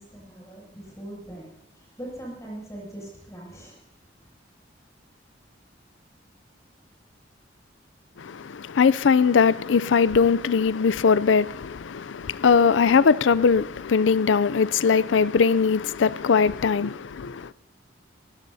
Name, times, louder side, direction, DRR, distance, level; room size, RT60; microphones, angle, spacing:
voice 1, 0.0-1.5 1.8-3.8, right 1 dB, 15° left, 7.3 m, -40 dB
voice 2, 8.2-17.5, left 5 dB, 85° left, 0.5 m, -20 dB
23.0 x 16.0 x 2.8 m
head